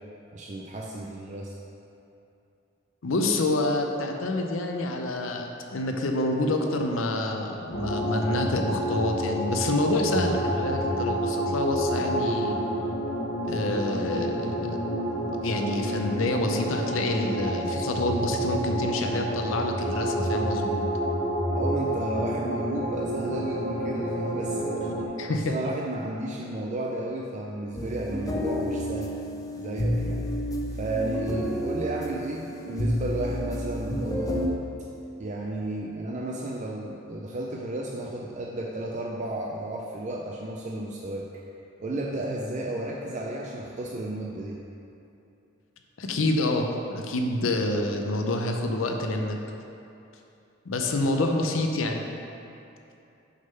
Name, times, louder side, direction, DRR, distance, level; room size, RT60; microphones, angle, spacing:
voice 1, 0.3-1.6 21.5-24.9 25.3-29.2 29.5-30.3 30.7-34.5 35.2-41.3 41.8-44.6, right 1 dB, 40° right, -2 dB, 0.4 m, -33 dB
voice 2, 3.0-12.5 13.4-20.8 25.2-25.5 46.0-49.4 50.6-52.0, left 2 dB, 85° left, 3 dB, 0.6 m, -27 dB
sound 1, 7.7-25.1, right 1 dB, 60° left, 1.0 m, -29 dB
sound 2, 27.8-34.5, equal, 20° left, 0.5 m, -30 dB
6.3 x 3.7 x 5.5 m, 2.8 s
head